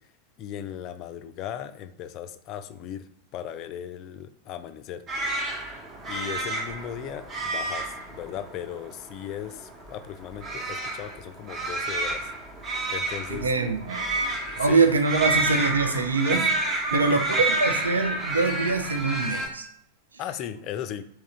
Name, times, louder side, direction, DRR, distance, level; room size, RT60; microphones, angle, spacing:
voice 1, 0.4-5.0 5.5-5.6 6.1-12.3 12.6-13.5 14.4-15.0 16.3-16.5 16.9-17.4 20.2-21.0, left 10 dB, 40° left, 11 dB, 0.3 m, -37 dB
sound 1, 5.1-19.5, right 2 dB, 25° right, 0.9 m, -30 dB
voice 2, 13.3-16.5 16.9-19.7 20.1-20.2, right 4 dB, 75° right, 6 dB, 0.5 m, -24 dB
3.6 x 2.9 x 4.3 m, 0.72 s
figure-of-eight pair, 90°, 0 cm